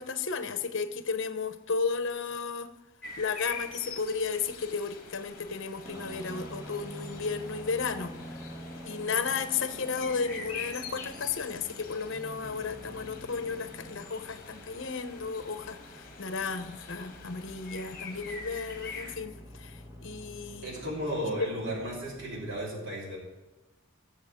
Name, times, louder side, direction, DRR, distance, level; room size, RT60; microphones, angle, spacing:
voice 1, 0.0-2.7 3.2-8.1 8.8-20.7 21.2-21.5, left 5 dB, 60° left, 0.9 m, -33 dB
sound 1, 3.0-19.2, left 5 dB, 40° left, 1.5 m, -45 dB
sound 2, 5.8-22.6, equal, 15° right, 1.2 m, -47 dB
voice 2, 20.6-23.2, equal, 60° right, 4.3 m, -34 dB
20.5 x 7.2 x 3.7 m
head